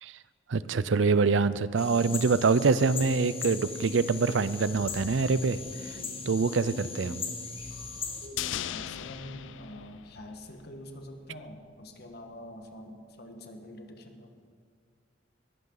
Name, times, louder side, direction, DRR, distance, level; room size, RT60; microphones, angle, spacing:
voice 1, 0.5-5.6 5.8-6.0 6.3-7.2, right 4 dB, 75° right, 16 dB, 0.5 m, -25 dB
sound 1, 1.8-8.3, left 5 dB, 30° left, 1.8 m, -39 dB
sound 2, 2.2-9.2, equal, 90° right, 4.4 m, -45 dB
sound 3, 8.4-10.8 11.0-11.1, left 11 dB, 75° left, 0.4 m, -37 dB
voice 2, 8.5-14.3, left 1 dB, 55° left, 5 dB, 1.5 m, -46 dB
20.5 x 14.5 x 4.0 m, 2.2 s
head